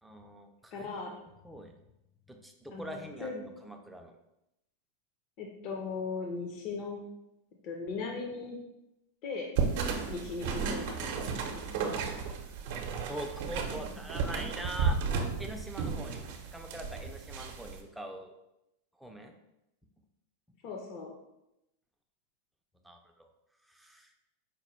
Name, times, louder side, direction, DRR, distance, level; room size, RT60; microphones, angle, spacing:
voice 1, 0.0-1.0 1.4-1.8 2.3-4.2 13.1-16.2 16.5-18.3 19.0-19.3 22.8-23.3 23.7-24.1, right 1 dB, ahead, 3 dB, 0.5 m, -43 dB
voice 2, 0.7-1.1 2.7-3.5 5.4-7.0 7.6-8.6 9.2-9.5 10.1-11.6 13.7-13.8 20.6-21.1, left 4 dB, 45° left, 1 dB, 0.7 m, -38 dB
sound 1, 9.6-17.8, right 5 dB, 60° right, 0.6 m, -33 dB
5.1 x 2.2 x 4.3 m, 0.87 s
supercardioid pair, 140°, 0 cm